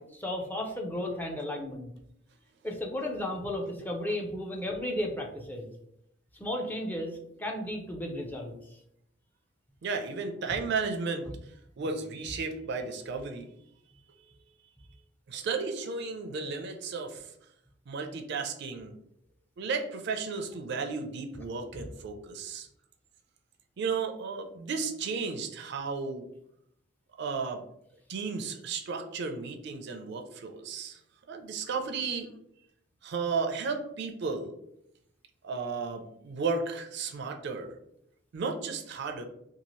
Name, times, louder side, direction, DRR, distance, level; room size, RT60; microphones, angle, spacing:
voice 1, 0.0-1.9 2.6-5.7 6.3-8.6, left 1 dB, 10° left, 0 dB, 0.4 m, -34 dB
voice 2, 9.8-13.5 14.1-14.3 15.3-17.3 17.9-19.0 19.6-22.7 23.8-26.3 27.2-27.6 28.1-31.0 31.3-32.3 33.0-34.5 35.4-37.8 38.3-39.2, right 4 dB, 60° right, 5 dB, 0.4 m, -34 dB
2.7 x 2.4 x 3.0 m, 0.76 s
head